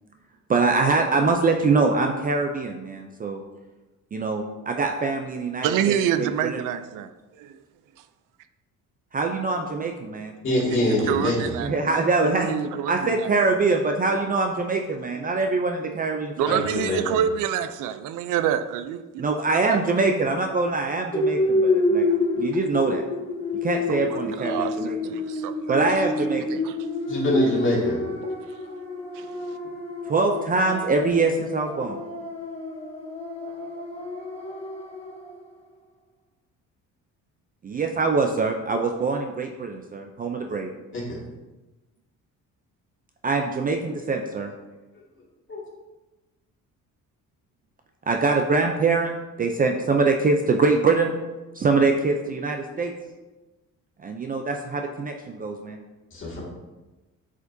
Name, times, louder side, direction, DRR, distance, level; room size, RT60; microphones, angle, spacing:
voice 1, 0.5-3.4 4.1-6.6 9.1-10.3 11.6-12.5 12.9-16.6 19.2-22.1 22.4-23.0 23.6-25.0 25.7-26.6 30.0-32.0 37.6-40.7 43.2-44.5 48.1-49.1 49.4-51.1 51.5-52.9 54.0-55.8, right 3 dB, 30° right, 3 dB, 0.4 m, -24 dB
voice 2, 5.6-7.1 7.4-7.6 10.5-13.3 16.4-19.8 23.9-25.9 26.6-26.8 28.2-28.4 29.1-29.6, right 9 dB, 80° right, 10 dB, 0.5 m, -28 dB
voice 3, 10.4-11.3 16.5-17.0 27.1-28.0 40.9-41.0 45.5-45.6 56.1-56.4, left 1 dB, 40° left, -4 dB, 2.1 m, -23 dB
sound 1, 21.1-35.3, left 2 dB, 20° left, 1.0 m, -28 dB
8.0 x 5.0 x 2.7 m, 1.1 s
cardioid pair, 130°, 31 cm